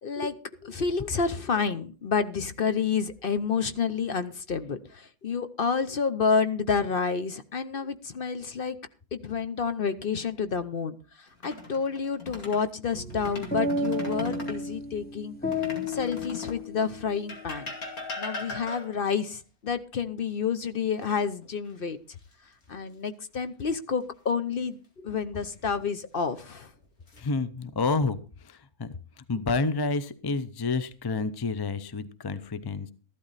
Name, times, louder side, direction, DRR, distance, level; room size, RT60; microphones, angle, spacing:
voice 1, 0.0-8.8 9.1-15.4 15.8-17.7 18.2-22.0 22.7-26.7, left 5 dB, 45° left, 11 dB, 0.8 m, -29 dB
sound 1, 11.3-12.7 13.1-14.6 15.5-16.7 17.3-19.1 21.0-21.7 22.1-22.3 25.2-25.8 26.6-27.2, left 3 dB, 75° left, 2.8 m, -39 dB
sound 2, 12.9-17.3, left 2 dB, 5° left, 1.2 m, -32 dB
voice 2, 27.2-28.2 28.4-29.0 29.3-32.9, left 3 dB, 30° left, 13 dB, 0.4 m, -29 dB
14.0 x 12.0 x 4.1 m, 0.35 s
omnidirectional pair, 1.5 m